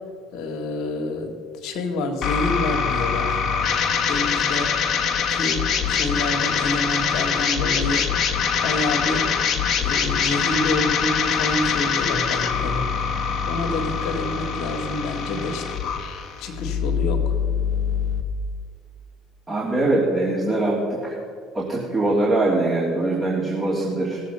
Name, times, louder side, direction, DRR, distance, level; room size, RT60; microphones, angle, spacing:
voice 1, 0.3-3.4 4.1-4.8 5.3-8.1 8.6-9.3 9.8-12.9 13.5-15.8 16.4-17.3, left 2 dB, 65° left, 3 dB, 1.6 m, -28 dB
sound 1, 2.2-18.2, left 7 dB, 50° left, 1.3 m, -24 dB
voice 2, 19.5-21.2 21.5-24.2, right 2 dB, 25° right, -5 dB, 2.8 m, -22 dB
18.0 x 7.4 x 5.5 m, 2.1 s
hypercardioid pair, 65°, 0 cm